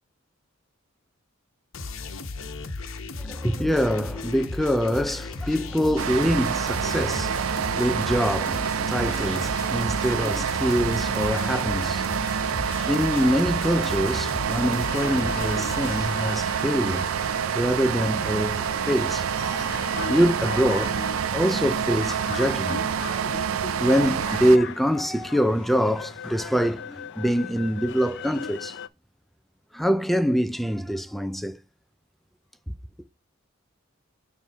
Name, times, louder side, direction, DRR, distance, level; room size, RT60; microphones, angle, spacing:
sound 1, 1.7-16.1, left 3 dB, 75° left, 1.1 m, -35 dB
voice 1, 3.2-12.1 12.8-19.7 20.1-23.4 23.8-28.8 29.7-31.6, equal, ahead, 0.4 m, -25 dB
sound 2, 6.0-24.6, right 7 dB, 85° right, 0.4 m, -27 dB
sound 3, 14.8-28.9, left 7 dB, 60° left, 0.5 m, -39 dB
7.3 x 3.5 x 5.5 m
head